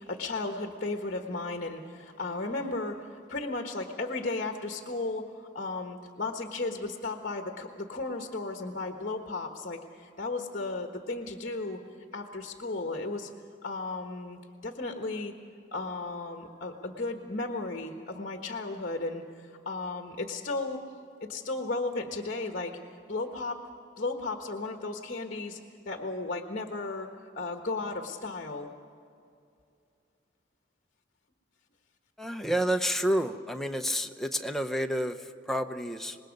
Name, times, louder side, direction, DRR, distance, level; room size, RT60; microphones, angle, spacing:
voice 1, 0.0-11.8 12.1-13.3 13.6-15.3 15.7-20.8 21.2-22.8 23.1-23.6 24.0-25.6 25.8-27.1 27.3-28.7, left 3 dB, 45° left, 4 dB, 1.3 m, -35 dB
voice 2, 32.2-36.2, equal, ahead, 5 dB, 0.7 m, -29 dB
25.5 x 20.5 x 5.3 m, 2.5 s
head